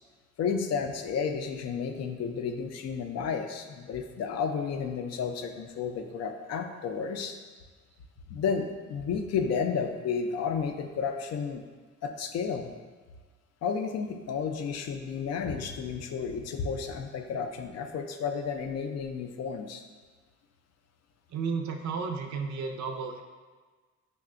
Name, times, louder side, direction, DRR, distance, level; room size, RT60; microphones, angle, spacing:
voice 1, 0.4-7.4 8.3-11.6 12.0-12.7 13.6-19.8, left 6 dB, 60° left, 5 dB, 0.4 m, -32 dB
voice 2, 21.3-23.2, right 5 dB, 65° right, 4 dB, 0.5 m, -33 dB
5.6 x 2.1 x 2.4 m, 1.4 s
cardioid pair, 90°, 30 cm